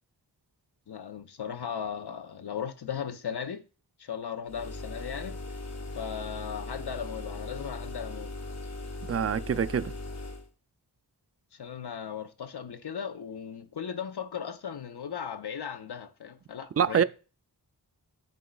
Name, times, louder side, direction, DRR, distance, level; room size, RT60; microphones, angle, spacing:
voice 1, 0.9-3.6 4.0-5.4 5.9-8.3 11.5-17.0, left 7 dB, 75° left, 0.8 m, -37 dB
sound 1, 4.5-10.5, left 2 dB, 40° left, 0.9 m, -39 dB
voice 2, 9.1-9.9 16.8-17.0, right 8 dB, 40° right, 0.4 m, -25 dB
11.0 x 3.8 x 2.3 m
wide cardioid pair, 50°, 40 cm